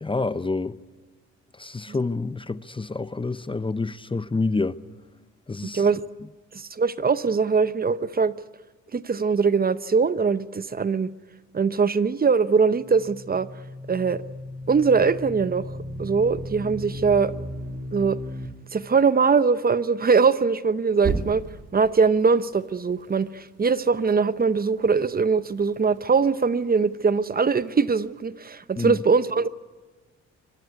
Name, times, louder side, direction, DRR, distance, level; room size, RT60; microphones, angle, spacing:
voice 1, 0.0-0.8 1.6-4.8 5.5-5.9 28.8-29.0, left 3 dB, 15° left, 0.8 m, -28 dB
voice 2, 5.7-6.0 6.5-8.3 8.9-11.1 11.5-13.5 13.9-14.2 14.7-15.6 16.0-17.3 17.9-18.2 18.7-21.4 21.7-29.5, right 5 dB, 30° right, 0.9 m, -22 dB
sound 1, 12.7-18.5 21.0-21.8, right 1 dB, 55° right, 2.9 m, -34 dB
25.0 x 21.0 x 9.5 m
cardioid pair, 90°, 30 cm